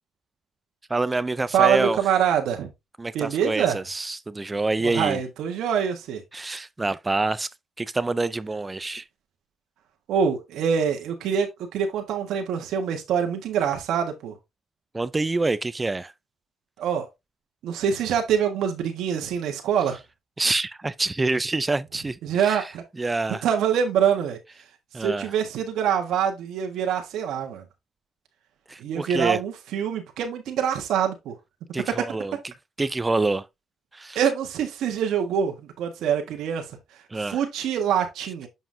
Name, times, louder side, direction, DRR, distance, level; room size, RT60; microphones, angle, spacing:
voice 1, 0.9-2.0 3.0-5.2 6.3-7.5 7.8-9.0 14.9-16.1 20.4-22.7 23.0-23.4 24.9-25.3 28.7-29.4 31.7-33.5 33.9-34.2 37.1-37.4, right 3 dB, 20° right, 0.4 m, -26 dB
voice 2, 1.5-2.7 3.1-3.8 4.8-6.2 10.1-14.3 16.8-17.1 17.6-20.0 22.2-22.8 23.4-24.4 25.0-27.6 28.8-31.3 34.1-36.6 37.2-38.5, right 8 dB, 80° right, 1.6 m, -25 dB
7.2 x 5.6 x 2.7 m
cardioid pair, 90°, 0 cm